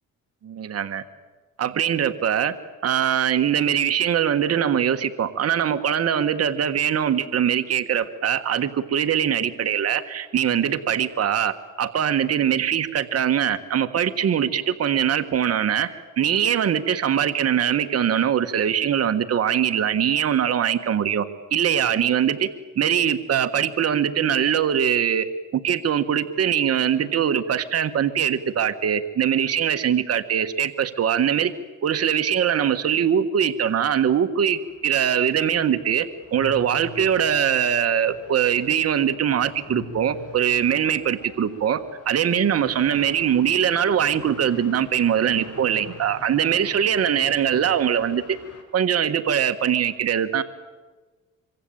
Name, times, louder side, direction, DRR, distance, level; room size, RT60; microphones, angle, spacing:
voice 1, 0.4-1.0 1.6-2.5 2.8-22.5 22.7-25.3 25.6-31.5 31.8-48.4 48.7-50.4, right 9 dB, 55° right, 10 dB, 1.6 m, -22 dB
sound 1, 34.4-48.6, left 4 dB, 55° left, 6.1 m, -45 dB
26.0 x 24.0 x 8.9 m, 1.3 s
cardioid pair, 90°, 30 cm